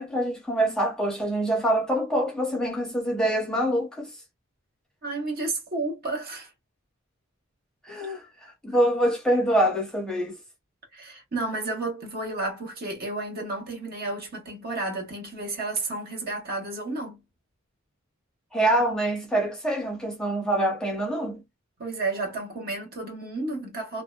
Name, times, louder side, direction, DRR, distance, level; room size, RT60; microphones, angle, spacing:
voice 1, 0.0-4.1 7.8-10.4 18.5-21.4, right 1 dB, 5° left, 0.7 m, -25 dB
voice 2, 5.0-6.5 10.9-17.2 21.8-24.0, right 2 dB, 45° right, 0.9 m, -32 dB
2.6 x 2.1 x 2.2 m
head